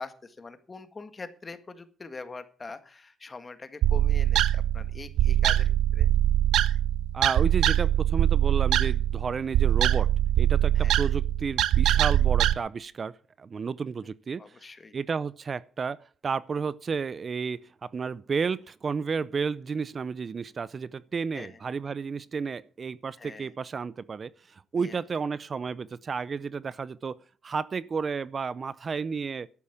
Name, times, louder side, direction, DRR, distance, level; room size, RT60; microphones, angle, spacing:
voice 1, 0.0-6.1 10.8-10.9 14.4-15.0 21.3-21.6 23.2-23.5 24.8-25.0, left 3 dB, 30° left, 1.7 m, -43 dB
sound 1, 3.8-12.5, right 12 dB, 80° right, 0.6 m, -23 dB
voice 2, 7.1-10.1 10.4-14.6 14.9-29.5, right 5 dB, 40° right, 0.5 m, -32 dB
12.0 x 8.4 x 7.0 m
cardioid pair, 90°, 0 cm